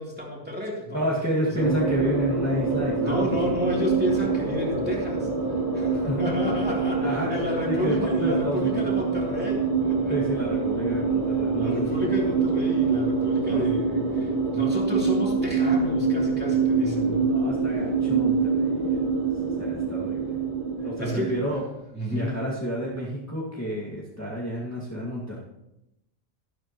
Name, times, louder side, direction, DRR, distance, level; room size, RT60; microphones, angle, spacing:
voice 1, 0.0-1.1 1.4-1.7 3.0-10.2 11.6-17.3 20.8-21.6 21.9-22.4, left 1 dB, 10° right, -4 dB, 2.9 m, -32 dB
voice 2, 0.9-3.6 5.9-6.2 7.0-7.3 7.6-8.8 10.1-11.9 13.5-13.6 17.3-19.1 19.6-20.3 20.8-21.6 22.1-25.4, equal, 15° left, -6 dB, 2.0 m, -30 dB
sound 1, 1.6-21.5, right 4 dB, 45° right, 3.4 m, -25 dB
12.5 x 12.0 x 3.0 m, 0.90 s
omnidirectional pair, 1.1 m